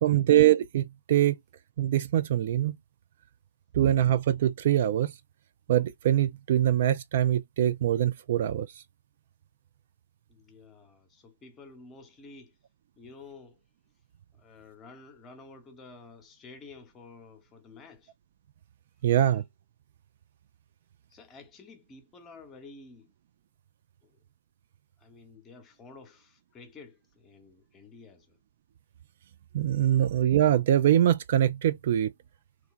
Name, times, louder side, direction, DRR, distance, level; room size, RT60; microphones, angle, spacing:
voice 1, 0.0-1.4 1.8-2.8 3.7-5.1 5.7-8.8 19.0-19.4 29.5-32.1, right 11 dB, 40° right, 0.3 m, -23 dB
voice 2, 10.3-12.5 13.0-13.6 14.3-18.1 21.1-23.1 24.0-24.2 25.0-28.3, left 3 dB, 15° left, 0.9 m, -51 dB
3.0 x 2.3 x 3.6 m
figure-of-eight pair, 130°, 0 cm